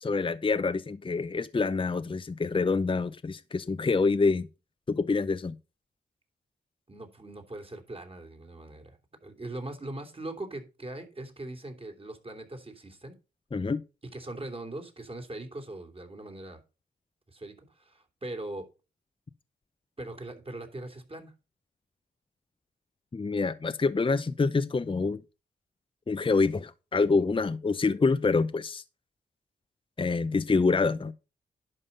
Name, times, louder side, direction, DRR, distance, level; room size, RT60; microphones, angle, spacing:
voice 1, 0.0-4.5 4.9-5.5 13.5-13.8 23.1-25.2 26.1-28.8 30.0-31.1, left 4 dB, 30° left, 0.7 m, -26 dB
voice 2, 6.9-9.0 9.2-13.1 14.1-16.6 17.3-18.7 20.0-21.3, right 2 dB, 30° right, 3.1 m, -41 dB
11.0 x 5.5 x 5.4 m
cardioid pair, 55°, 18 cm